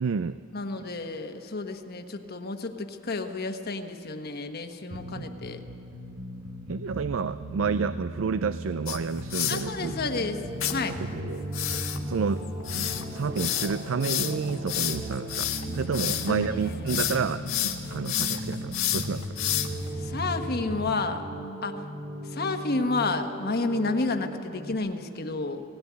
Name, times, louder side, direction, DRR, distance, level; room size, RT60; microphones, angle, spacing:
voice 1, 0.0-0.4 5.1-5.3 6.7-10.2 11.0-19.4 19.7-19.8, right 5 dB, 65° right, 13 dB, 0.4 m, -30 dB
voice 2, 0.5-5.6 9.5-10.4 10.7-10.9 16.0-16.5 20.0-21.2 21.6-21.7 22.3-25.6, left 3 dB, 50° left, 6 dB, 1.3 m, -30 dB
sound 1, 4.9-20.9, right 1 dB, 85° right, 1.4 m, -38 dB
sound 2, 8.9-9.6 10.6-10.7 11.5-16.3 16.7-17.2 17.5-19.9, left 12 dB, 85° left, 1.5 m, -29 dB
sound 3, 9.7-24.7, equal, 30° right, 2.6 m, -38 dB
18.5 x 17.0 x 9.6 m, 2.7 s
head